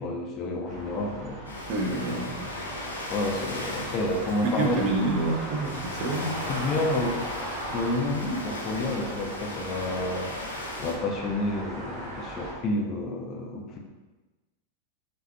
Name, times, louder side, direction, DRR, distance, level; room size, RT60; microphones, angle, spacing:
voice 1, 0.0-1.4 2.2-2.4 3.1-5.0 6.5-7.2 7.7-10.3 10.8-13.8, left 2 dB, 35° left, 1 dB, 0.6 m, -30 dB
sound 1, 0.6-12.5, right 1 dB, 25° right, 1.4 m, -39 dB
Ocean, 1.4-10.9, left 1 dB, 75° left, 0.7 m, -37 dB
voice 2, 1.7-2.3 4.4-6.3, right 2 dB, 40° right, 0 dB, 0.8 m, -27 dB
5.5 x 3.1 x 2.3 m, 1.2 s
figure-of-eight pair, 90°, 0 cm